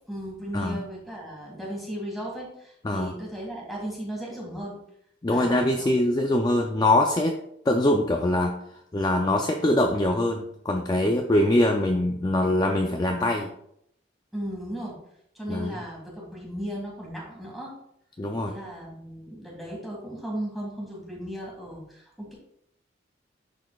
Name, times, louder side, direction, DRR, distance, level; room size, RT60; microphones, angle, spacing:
voice 1, 0.1-4.8 5.3-5.9 14.3-15.0 15.3-17.7 18.5-22.3, equal, ahead, -4 dB, 1.9 m, -36 dB
voice 2, 2.8-3.2 5.2-7.4 7.7-8.6 8.9-13.5 15.5-15.8 18.2-18.6, left 1 dB, 20° left, 3 dB, 0.4 m, -23 dB
10.5 x 4.1 x 2.3 m, 0.74 s
head